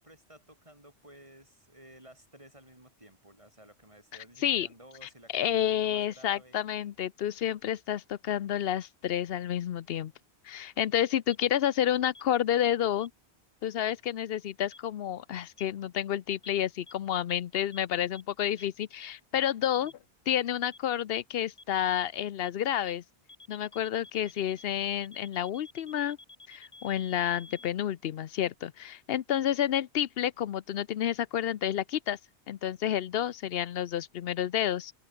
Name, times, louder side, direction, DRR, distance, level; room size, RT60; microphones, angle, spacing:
voice 1, 0.0-6.6 19.3-19.9, right 1 dB, 30° right, 6.8 m, -55 dB
voice 2, 5.0-10.1 10.4-13.1 13.6-19.9 20.3-23.0 23.5-26.2 26.5-32.2 32.5-34.9, left 10 dB, 65° left, 0.8 m, -30 dB
sound 1, 11.3-11.4 12.1-12.2 13.0-13.1 13.9-14.0 14.7-14.8 15.6-15.7 16.4-16.5 16.9-17.0 17.3-17.4 17.7-17.8 18.1-18.2 18.6-18.7 19.0-19.1 19.4-19.5 19.9-20.0 20.3-20.4 20.7-20.8 21.1-21.2 21.6-21.7 22.0-22.1 22.4-22.5 22.9-23.0 23.3-27.7, left 2 dB, 25° left, 2.1 m, -51 dB
omnidirectional pair, 1.1 m